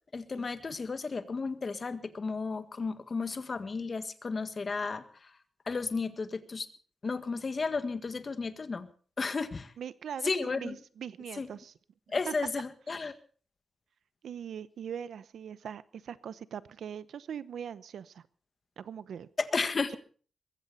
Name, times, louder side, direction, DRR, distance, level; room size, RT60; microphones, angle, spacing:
voice 1, 0.1-5.3 5.7-6.7 7.0-8.9 9.2-9.7 10.2-10.8 11.4-11.5 12.1-13.1 19.4-20.0, left 4 dB, 40° left, 10 dB, 1.7 m, -33 dB
voice 2, 9.8-11.7 12.3-12.4 14.2-18.3 18.8-19.3, right 8 dB, 85° right, 16 dB, 0.9 m, -41 dB
22.0 x 15.5 x 4.2 m, 0.43 s
cardioid pair, 100°, 0 cm